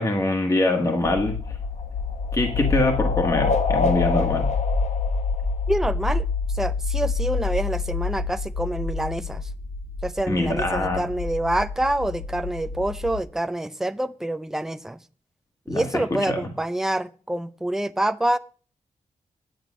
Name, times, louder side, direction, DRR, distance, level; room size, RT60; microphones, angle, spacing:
voice 1, 0.0-1.3 2.3-4.5 10.3-11.0 15.7-15.8 16.3-16.4, left 2 dB, 25° left, 1.4 m, -23 dB
sound 1, 1.0-13.2, left 4 dB, 45° left, 3.2 m, -28 dB
sound 2, 1.3-6.1, left 4 dB, 65° left, 1.3 m, -28 dB
voice 2, 5.7-6.3 6.5-9.5 10.0-15.0 15.7-18.4, right 1 dB, 5° right, 0.4 m, -26 dB
10.5 x 8.6 x 6.2 m
wide cardioid pair, 175°, 13 cm